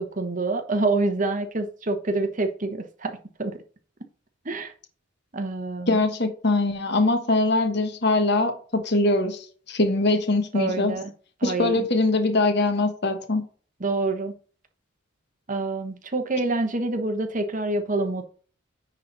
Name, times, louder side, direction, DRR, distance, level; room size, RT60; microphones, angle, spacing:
voice 1, 0.0-3.5 4.4-4.7 5.3-6.0 10.5-11.0 11.4-11.9 13.8-14.3 15.5-18.3, right 2 dB, 40° right, 1.1 m, -27 dB
voice 2, 5.9-10.9 11.4-13.4, left 2 dB, 55° left, 1.4 m, -22 dB
9.5 x 4.1 x 4.0 m
head